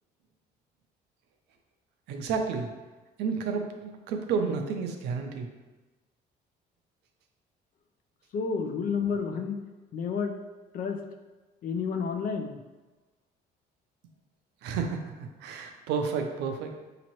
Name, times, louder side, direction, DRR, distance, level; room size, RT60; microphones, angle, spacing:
voice 1, 2.1-2.7 3.2-5.5 14.6-16.8, right 5 dB, 85° right, 4 dB, 0.6 m, -31 dB
voice 2, 8.3-9.6 9.9-10.3 10.7-11.0 11.6-12.6, left 5 dB, 55° left, 5 dB, 0.5 m, -30 dB
5.0 x 2.9 x 3.0 m, 1.2 s
cardioid pair, 110°, 17 cm